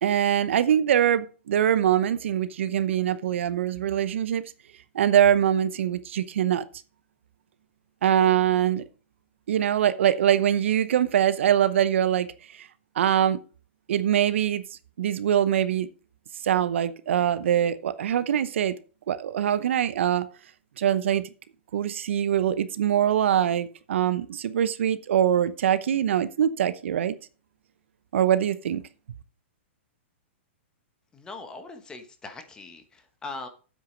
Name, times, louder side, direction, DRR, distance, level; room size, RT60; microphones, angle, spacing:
voice 1, 0.0-4.4 4.9-6.6 8.0-8.8 9.5-12.3 12.6-12.7 12.9-13.4 13.9-14.6 15.0-15.9 16.4-18.8 19.1-20.3 20.8-21.2 21.7-27.1 28.1-28.8, right 10 dB, 70° right, 0.9 m, -23 dB
voice 2, 31.1-33.5, left 3 dB, 10° left, 1.2 m, -40 dB
9.3 x 7.8 x 5.2 m
hypercardioid pair, 155°, 7 cm